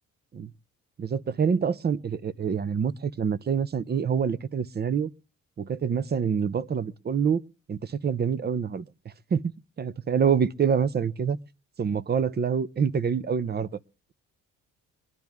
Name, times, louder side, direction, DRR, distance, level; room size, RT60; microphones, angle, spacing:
voice 1, 1.0-5.1 5.6-7.4 7.7-8.9 9.3-9.4 9.8-11.4 11.8-13.7, right 7 dB, 35° right, 0.6 m, -26 dB
23.0 x 10.5 x 3.5 m
cardioid pair, 90°, 30 cm